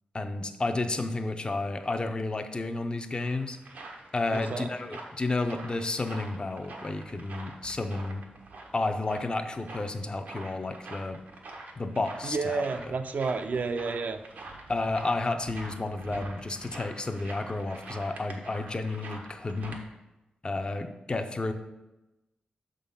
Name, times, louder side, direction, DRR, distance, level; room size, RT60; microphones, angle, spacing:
voice 1, 0.1-3.6 4.1-8.2 8.7-11.2 11.8-12.6 14.7-19.8 20.4-21.5, left 2 dB, 30° left, 7 dB, 0.5 m, -31 dB
sound 1, 2.8-19.8, right 2 dB, 90° right, 1.1 m, -46 dB
voice 2, 4.3-4.7 12.2-14.2, right 4 dB, 65° right, 9 dB, 0.6 m, -30 dB
6.7 x 3.8 x 5.5 m, 0.99 s
wide cardioid pair, 80°, 3 cm